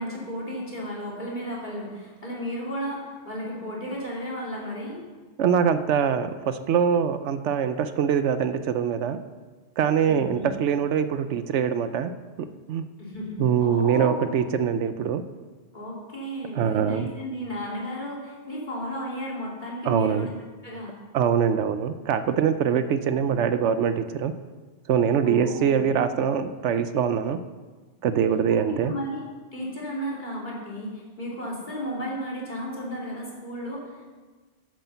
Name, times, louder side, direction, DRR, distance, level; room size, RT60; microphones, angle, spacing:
voice 1, 0.0-5.0 10.0-10.5 13.0-14.4 15.7-20.3 20.6-20.9 23.2-23.4 25.2-25.8 28.5-29.2 29.5-34.1, equal, 40° left, -5 dB, 3.0 m, -34 dB
voice 2, 5.4-9.2 9.8-12.1 12.4-12.8 13.4-15.2 16.5-17.1 19.8-20.3 21.1-24.3 24.9-27.4 28.0-28.9, right 7 dB, 75° right, 11 dB, 0.9 m, -23 dB
8.6 x 8.0 x 6.8 m, 1.3 s
omnidirectional pair, 1.2 m